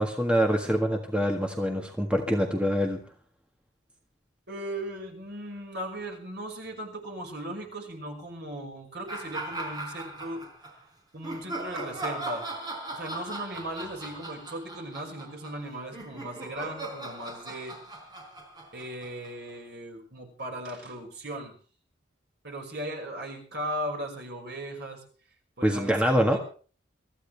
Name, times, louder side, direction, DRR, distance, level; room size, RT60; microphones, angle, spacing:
voice 1, 0.0-3.0 25.6-26.4, equal, 5° right, 2 dB, 1.6 m, -25 dB
voice 2, 4.5-10.5 11.1-12.5 12.9-17.7 18.7-21.5 22.4-25.0 25.6-26.4, right 1 dB, 55° right, 1 dB, 5.7 m, -37 dB
sound 1, 9.1-10.7 11.2-19.5, right 2 dB, 20° right, 4.2 m, -38 dB
24.0 x 14.5 x 3.4 m, 0.40 s
head